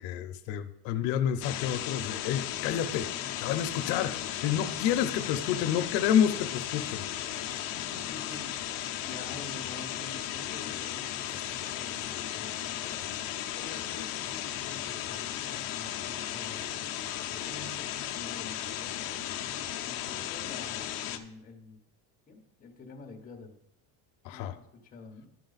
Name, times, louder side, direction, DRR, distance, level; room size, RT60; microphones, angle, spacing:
voice 1, 0.0-7.1 24.2-24.6, left 9 dB, 90° left, 8 dB, 0.8 m, -29 dB
sound 1, 1.4-21.2, left 12 dB, 55° left, 0.7 m, -35 dB
voice 2, 7.7-12.9 13.6-16.9 17.2-19.2 19.8-21.8 22.3-23.6 24.3-25.3, left 3 dB, 20° left, 1 dB, 1.1 m, -48 dB
11.5 x 4.7 x 4.0 m, 0.80 s
cardioid pair, 170°, 43 cm